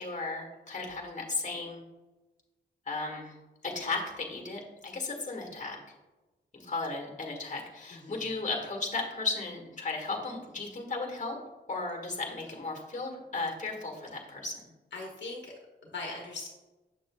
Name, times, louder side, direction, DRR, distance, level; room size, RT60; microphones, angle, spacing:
voice 1, 0.0-1.8 2.9-3.3 3.6-5.8 6.5-11.4 11.7-14.7, left 3 dB, 40° left, 1 dB, 1.5 m, -35 dB
voice 2, 7.9-8.4 14.9-15.5 15.8-16.5, left 3 dB, 70° left, -1 dB, 1.2 m, -40 dB
7.8 x 6.6 x 2.2 m, 1.1 s
wide cardioid pair, 115°, 19 cm